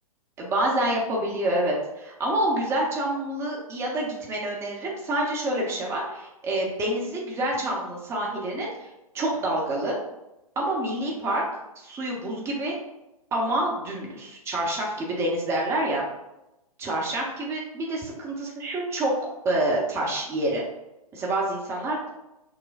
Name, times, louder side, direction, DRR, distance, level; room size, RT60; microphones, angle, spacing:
voice 1, 0.4-8.9 9.1-10.0 10.6-11.4 11.8-12.7 13.3-16.0 16.8-19.1 19.4-20.6 21.1-22.1, right 1 dB, 15° right, -2 dB, 0.8 m, -27 dB
6.3 x 2.1 x 2.5 m, 0.93 s
figure-of-eight pair, 115°, 19 cm